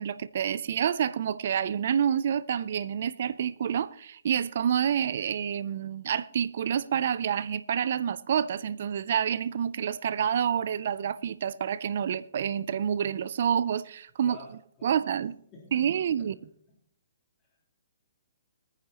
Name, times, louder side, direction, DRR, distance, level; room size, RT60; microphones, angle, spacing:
voice 1, 0.0-14.4 14.8-15.4 15.7-16.4, right 8 dB, 60° right, 0.5 m, -28 dB
voice 2, 14.2-14.9 15.5-16.8 17.5-17.6, left 3 dB, 25° left, 3.5 m, -51 dB
22.0 x 9.7 x 2.9 m
hypercardioid pair, 145°, 0 cm